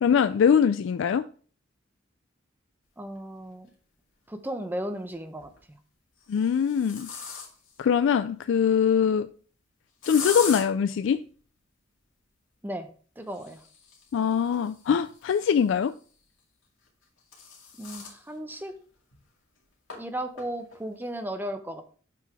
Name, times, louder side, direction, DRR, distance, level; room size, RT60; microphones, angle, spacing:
voice 1, 0.0-1.2 6.3-7.1 7.8-9.3 10.1-11.2 14.1-15.9, left 7 dB, 70° left, 0.3 m, -22 dB
voice 2, 3.0-3.7 4.3-5.8 12.6-12.9 13.2-13.6 17.8-18.7 19.9-21.8, right 1 dB, 10° right, 0.7 m, -35 dB
sound 1, 3.6-3.7 5.2-5.6 6.2-7.8 10.0-10.6 13.2-15.9 16.9-18.2 18.7-18.8 19.1-19.2 19.9-20.0 20.4-20.8, left 5 dB, 85° left, 2.3 m, -39 dB
7.5 x 5.6 x 3.4 m
head